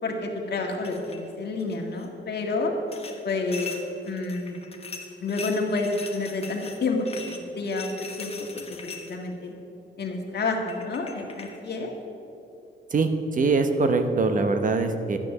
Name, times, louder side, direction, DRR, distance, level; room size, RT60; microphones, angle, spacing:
voice 1, 0.0-2.7 3.2-3.7 4.0-4.5 5.2-7.9 8.2-9.5 10.0-11.9, left 3 dB, 60° left, 1 dB, 1.7 m, -29 dB
sound 1, 0.8-1.2 1.6-2.1 2.9-9.3 10.3-10.4 10.7-11.6, left 4 dB, 30° left, 1.1 m, -41 dB
voice 2, 12.9-15.2, right 3 dB, 45° right, 7 dB, 0.9 m, -23 dB
11.5 x 9.8 x 6.6 m, 2.8 s
wide cardioid pair, 175°, 19 cm